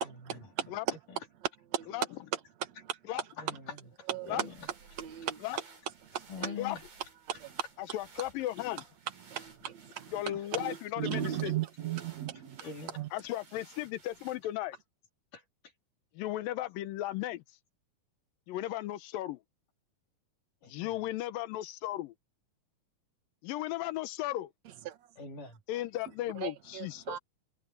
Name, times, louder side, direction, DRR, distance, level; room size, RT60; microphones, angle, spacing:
voice 1, 0.3-0.7 1.7-1.9 2.3-2.4 2.8-3.0 4.1-4.5 5.0-5.4 6.1-6.6 7.3-7.6 9.3-10.1 10.5-12.6 13.0-13.1 24.9-25.0 26.4-27.2, right 11 dB, 55° right, 2.7 m, -36 dB
voice 2, 3.4-3.8 4.2-4.7 6.3-6.8 10.3-10.4 12.6-13.0 15.3-15.4 20.6-21.0 25.2-25.6, left 5 dB, 65° left, 4.8 m, -43 dB
sound 1, 4.1-14.7, right 4 dB, 85° right, 8.3 m, -58 dB
voice 3, 7.8-8.8 10.1-11.6 13.1-14.8 16.2-17.4 18.5-19.4 20.6-22.1 23.4-24.5 25.7-27.2, left 14 dB, 80° left, 2.6 m, -35 dB
omnidirectional pair, 4.0 m